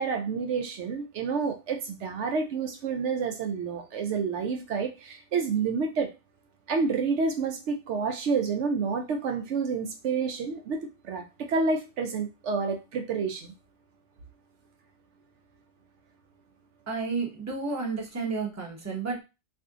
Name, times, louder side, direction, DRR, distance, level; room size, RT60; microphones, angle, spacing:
voice 1, 0.0-6.1 6.7-13.5, right 5 dB, 75° right, 4 dB, 0.9 m, -29 dB
voice 2, 16.9-19.2, right 4 dB, 15° right, -2 dB, 0.8 m, -31 dB
2.7 x 2.5 x 3.5 m, 0.27 s
omnidirectional pair, 1.2 m